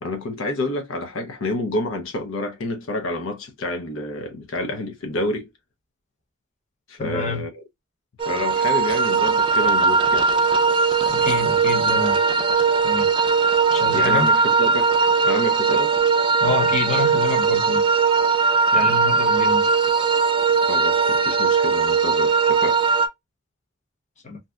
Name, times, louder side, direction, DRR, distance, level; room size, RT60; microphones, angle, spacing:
voice 1, 0.0-5.5 6.9-7.6 8.3-10.3 13.9-15.9 20.7-22.8, left 1 dB, 80° left, 0.7 m, -28 dB
voice 2, 7.0-7.4 11.1-12.2 12.8-13.1 13.7-14.3 16.4-17.9 18.7-19.7 24.2-24.4, left 4 dB, 35° left, 0.9 m, -27 dB
sound 1, 8.2-23.1, right 5 dB, 25° right, 0.3 m, -19 dB
2.7 x 2.2 x 3.5 m
head